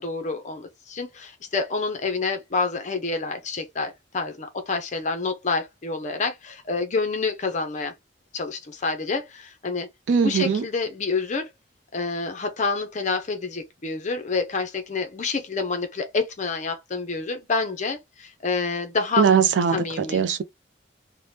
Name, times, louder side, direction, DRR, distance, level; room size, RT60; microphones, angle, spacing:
voice 1, 0.0-7.9 8.3-9.9 10.2-11.5 11.9-19.3 19.7-20.2, left 4 dB, 40° left, 0.5 m, -28 dB
voice 2, 10.1-10.7 19.2-20.4, right 6 dB, 75° right, 0.3 m, -20 dB
3.3 x 2.1 x 2.7 m
head